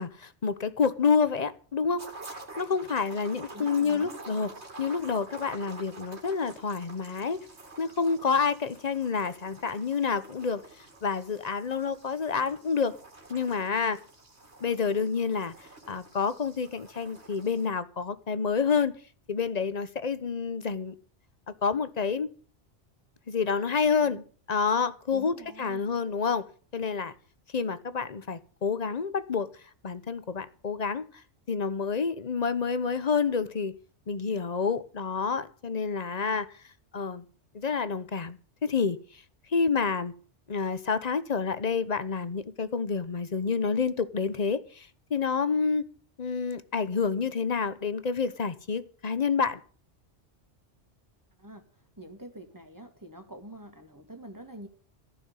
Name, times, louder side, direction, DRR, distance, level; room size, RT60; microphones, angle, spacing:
voice 1, 0.0-2.0 2.6-4.5 4.8-7.4 7.8-10.6 11.0-13.0 13.3-14.0 14.6-15.5 15.9-18.9 19.3-20.9 21.5-22.3 23.3-25.3 25.6-26.5 26.7-27.1 27.5-29.5 29.8-31.0 31.5-33.8 34.1-36.5 36.9-37.2 37.5-39.2 39.5-40.1 40.5-45.8 46.2-49.6, left 5 dB, 40° left, 0.9 m, -28 dB
sound 1, 2.0-17.7, right 2 dB, 70° right, 2.9 m, -48 dB
voice 2, 3.5-4.2 24.0-24.2 25.1-25.9 51.4-54.7, right 1 dB, 15° right, 1.8 m, -46 dB
14.5 x 6.2 x 9.5 m
omnidirectional pair, 1.2 m